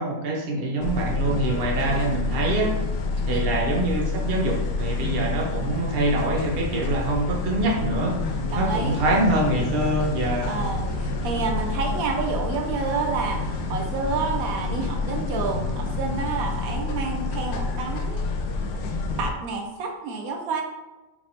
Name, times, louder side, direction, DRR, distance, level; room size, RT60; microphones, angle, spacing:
voice 1, 0.0-2.7 3.3-10.5, right 2 dB, 45° right, -2 dB, 1.0 m, -25 dB
sound 1, 0.8-19.3, left 3 dB, 85° left, 1.1 m, -28 dB
voice 2, 8.5-9.0 10.5-18.3 19.2-20.6, right 4 dB, 85° right, 3 dB, 1.1 m, -29 dB
4.9 x 3.3 x 2.8 m, 1.1 s
omnidirectional pair, 1.5 m